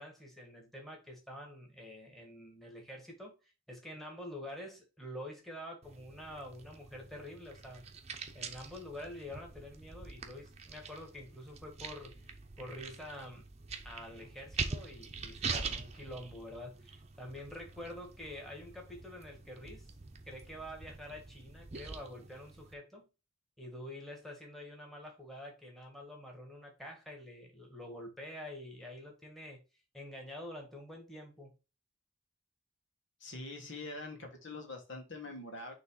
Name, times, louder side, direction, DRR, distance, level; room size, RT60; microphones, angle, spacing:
voice 1, 0.0-3.4 3.7-7.9 8.3-13.5 13.8-19.9 20.3-23.1 23.6-29.6 29.9-31.5, left 1 dB, ahead, 1 dB, 1.8 m, -47 dB
sound 1, 5.8-22.7, right 5 dB, 35° right, 0.9 m, -44 dB
voice 2, 33.2-35.7, left 2 dB, 65° left, 2 dB, 1.8 m, -44 dB
6.5 x 3.2 x 4.8 m, 0.30 s
head